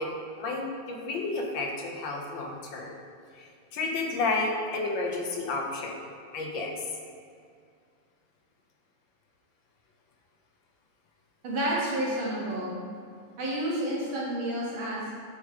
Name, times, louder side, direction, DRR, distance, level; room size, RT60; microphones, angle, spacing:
voice 1, 0.0-2.9 3.4-6.0 6.3-6.7, left 3 dB, 75° left, 1 dB, 1.5 m, -31 dB
voice 2, 11.4-12.8 13.4-15.2, right 1 dB, 85° right, -6 dB, 2.5 m, -30 dB
7.9 x 4.8 x 3.6 m, 2.2 s
omnidirectional pair, 2.2 m